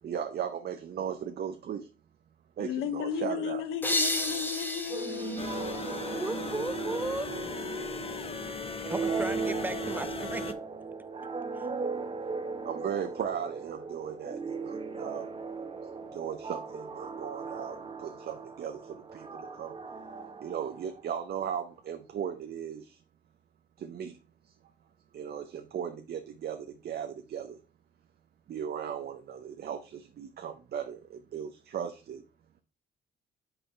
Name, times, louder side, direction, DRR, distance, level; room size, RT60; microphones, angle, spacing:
voice 1, 0.0-1.9 2.6-3.6 12.6-15.4 15.8-19.8 20.4-23.0 23.8-24.2 24.5-24.6 25.1-27.6 28.5-32.2, right 8 dB, 55° right, 0.6 m, -37 dB
voice 2, 2.6-6.2, left 8 dB, 80° left, 0.7 m, -35 dB
sound 1, 3.8-6.6, left 1 dB, 10° left, 1.0 m, -33 dB
sound 2, 4.9-21.3, right 4 dB, 30° right, 0.9 m, -37 dB
sound 3, 5.4-10.5, left 5 dB, 30° left, 0.7 m, -39 dB
voice 3, 6.1-7.3 8.9-10.6 11.5-11.7, right 2 dB, 10° right, 0.5 m, -35 dB
5.6 x 4.2 x 4.3 m
cardioid pair, 90°, 20 cm